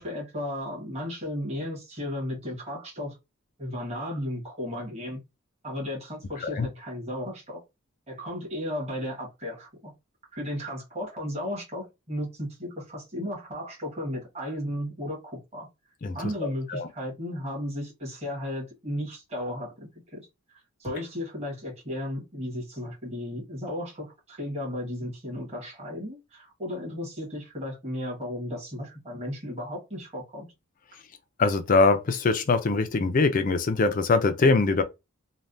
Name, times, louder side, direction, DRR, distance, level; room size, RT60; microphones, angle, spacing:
voice 1, 0.0-3.2 3.6-5.2 5.6-7.6 8.1-9.9 10.3-15.7 16.1-30.5, left 1 dB, 30° right, 1.3 m, -34 dB
voice 2, 16.4-16.9 31.4-34.8, left 3 dB, 40° left, 0.4 m, -23 dB
3.3 x 2.2 x 2.5 m
head